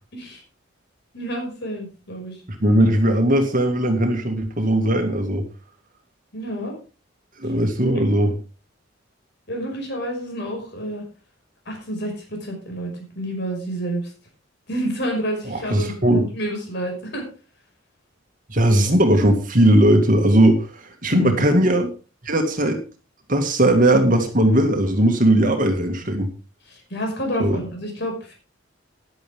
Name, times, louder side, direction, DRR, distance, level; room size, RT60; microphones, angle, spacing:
voice 1, 1.1-2.4 6.3-6.7 7.4-7.5 7.8-8.0 9.5-11.0 11.7-14.1 14.7-17.2 21.1-21.5 26.7-28.3, right 1 dB, 55° left, 1 dB, 5.8 m, -29 dB
voice 2, 2.6-5.4 7.4-8.3 15.5-16.2 18.5-21.9 22.2-22.8 23.3-26.3 27.4-27.6, right 1 dB, 40° right, 4 dB, 2.0 m, -18 dB
14.5 x 11.0 x 3.6 m, 0.34 s
head